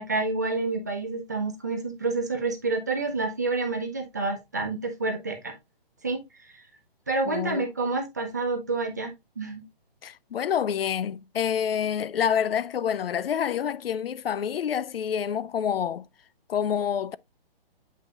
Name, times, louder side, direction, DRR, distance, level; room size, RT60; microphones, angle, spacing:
voice 1, 0.0-5.5 6.0-6.6 7.1-9.6, right 3 dB, 20° right, 0.7 m, -29 dB
voice 2, 7.3-7.6 10.0-16.0 16.5-17.2, left 8 dB, 75° left, 0.5 m, -27 dB
8.6 x 5.4 x 2.4 m
hypercardioid pair, 180°, 30 cm